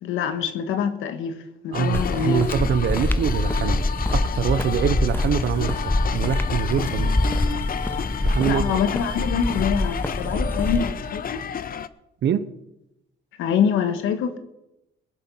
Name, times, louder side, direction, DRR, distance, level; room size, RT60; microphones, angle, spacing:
voice 1, 0.0-1.4 1.6-2.5 8.5-11.4 13.4-14.4, left 7 dB, 90° left, 1.5 m, -25 dB
sound 1, 1.7-11.9, left 8 dB, 45° left, 0.7 m, -31 dB
voice 2, 1.7-5.8 6.1-7.1 8.2-8.7 12.2-12.5, right 8 dB, 65° right, 0.9 m, -24 dB
sound 2, 1.9-10.9, left 1 dB, 10° left, 0.7 m, -25 dB
21.0 x 7.4 x 5.6 m
cardioid pair, 90°, 20 cm